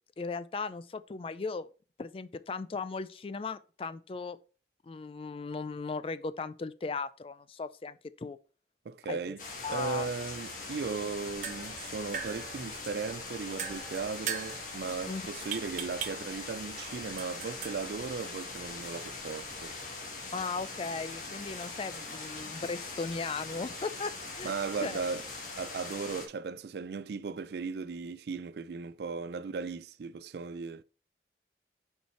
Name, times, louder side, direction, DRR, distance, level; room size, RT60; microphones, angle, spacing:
voice 1, 0.2-1.7 2.0-4.4 4.8-8.4 9.1-9.3 9.6-10.1 15.1-15.2 20.3-24.5 24.8-25.0, left 4 dB, 30° left, 0.3 m, -37 dB
voice 2, 8.9-9.4 9.7-19.7 24.4-25.2 25.5-30.8, right 5 dB, 70° right, 0.4 m, -37 dB
sound 1, 9.4-26.3, left 3 dB, 45° left, 1.5 m, -42 dB
sound 2, 11.1-19.8, right 7 dB, 45° right, 0.8 m, -43 dB
5.5 x 4.6 x 4.3 m
head